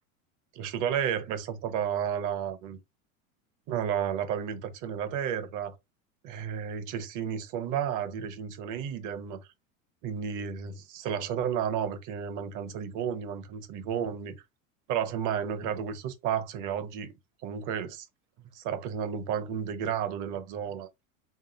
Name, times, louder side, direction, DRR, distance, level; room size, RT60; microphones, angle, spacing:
voice 1, 0.5-2.8 3.7-5.7 6.2-9.5 10.0-14.4 14.9-17.1 17.4-18.1 18.5-20.9, right 8 dB, 45° right, 1.0 m, -32 dB
3.7 x 2.7 x 3.9 m
hypercardioid pair, 100°, 42 cm